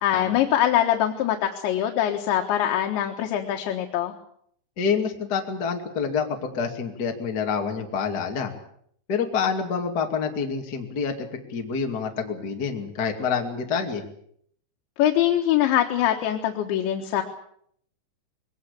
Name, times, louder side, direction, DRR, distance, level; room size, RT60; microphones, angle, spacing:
voice 1, 0.0-4.1 15.0-17.2, left 11 dB, 80° left, 3 dB, 3.7 m, -23 dB
voice 2, 4.8-8.5 9.1-14.0, left 6 dB, 30° left, 3 dB, 2.1 m, -27 dB
22.0 x 19.0 x 8.3 m, 0.67 s
omnidirectional pair, 5.2 m